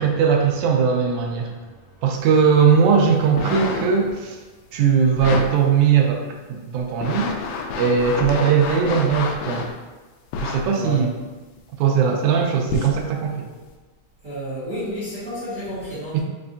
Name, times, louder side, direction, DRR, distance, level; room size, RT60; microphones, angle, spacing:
voice 1, 0.0-1.5 2.0-4.4 4.7-7.3 7.8-9.7 10.4-11.1 11.8-13.5 16.1-16.2, right 6 dB, 80° right, 1 dB, 1.8 m, -19 dB
sound 1, 3.2-4.1 5.2-5.5 6.1-6.2 6.8-9.7 10.3-10.6 11.6-11.7 12.7-13.0 13.7-13.8, left 5 dB, 90° left, 2.3 m, -28 dB
voice 2, 10.7-11.1 14.2-16.2, equal, 40° right, -14 dB, 1.5 m, -31 dB
5.4 x 3.3 x 2.6 m, 1.3 s
omnidirectional pair, 3.8 m